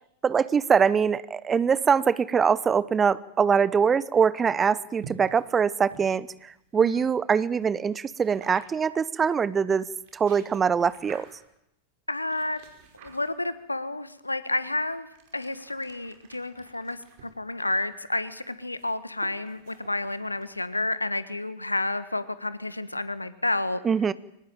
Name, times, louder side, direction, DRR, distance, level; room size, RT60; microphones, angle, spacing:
voice 1, 0.2-9.9 10.1-11.3 23.8-24.1, right 6 dB, 20° right, 19 dB, 0.9 m, -23 dB
sound 1, 5.0-7.1 8.2-8.9 9.9-11.6 12.3-13.6 14.4-20.9, right 5 dB, 50° right, 5.1 m, -52 dB
voice 2, 6.7-7.1 12.1-12.6 13.0-15.1 15.3-23.8, left 2 dB, 85° left, 15 dB, 1.5 m, -30 dB
24.0 x 19.5 x 9.1 m, 0.80 s
figure-of-eight pair, 90°, 0 cm